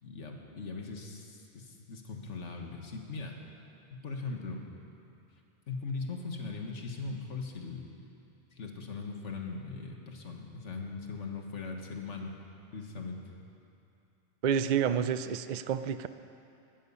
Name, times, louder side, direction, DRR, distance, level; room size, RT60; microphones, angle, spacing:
voice 1, 0.0-3.4 3.9-4.6 5.7-7.8 8.5-12.3 12.7-13.2, left 4 dB, 85° left, 2 dB, 1.8 m, -39 dB
voice 2, 14.4-16.1, right 8 dB, 55° right, 12 dB, 0.5 m, -29 dB
18.5 x 12.5 x 5.6 m, 2.7 s
omnidirectional pair, 1.2 m